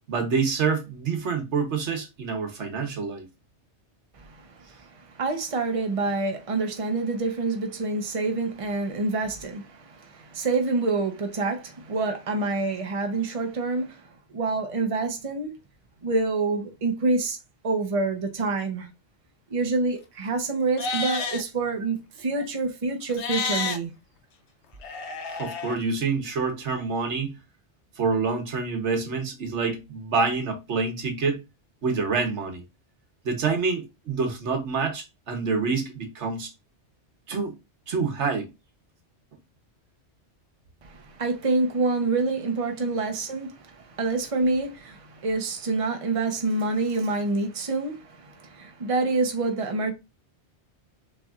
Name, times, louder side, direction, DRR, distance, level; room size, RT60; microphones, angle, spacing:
voice 1, 0.1-3.3 25.3-27.4 28.0-31.4 31.8-32.6 33.2-36.5 37.3-37.6 37.9-38.5, right 4 dB, 80° right, 1.3 m, -27 dB
voice 2, 4.1-15.5 16.0-17.4 17.6-18.9 19.5-23.9 40.8-49.9, right 3 dB, 35° right, 0.9 m, -27 dB
Livestock farm animals working animals, 20.7-21.4 23.1-23.8 24.8-25.8, left 5 dB, 75° left, 1.0 m, -30 dB
6.7 x 3.2 x 2.4 m
omnidirectional pair, 1.2 m